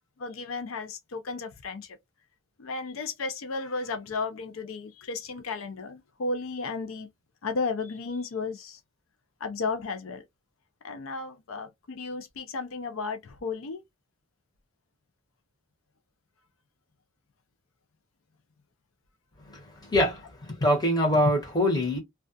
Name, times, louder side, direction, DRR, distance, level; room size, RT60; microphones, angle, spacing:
voice 1, 0.2-2.0 2.6-7.1 7.4-8.8 9.4-10.2 10.8-13.8, left 4 dB, 90° left, 0.5 m, -34 dB
voice 2, 19.9-22.0, left 1 dB, 20° left, 1.0 m, -24 dB
2.3 x 2.2 x 2.5 m
head